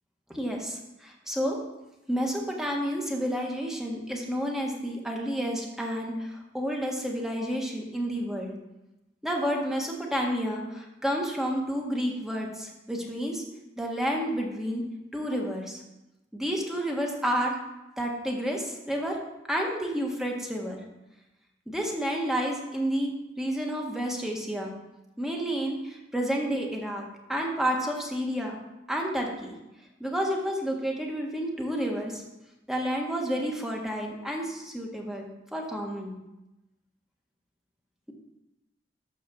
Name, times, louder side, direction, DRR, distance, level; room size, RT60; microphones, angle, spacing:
voice 1, 0.3-1.6 2.1-8.5 9.2-13.4 13.8-14.8 15.1-15.8 16.3-17.6 18.0-19.2 19.5-20.8 21.7-24.7 25.2-27.0 27.3-28.6 28.9-29.6 30.0-32.2 32.7-36.2, equal, 5° right, 0 dB, 1.5 m, -30 dB
12.0 x 4.3 x 6.9 m, 0.96 s
head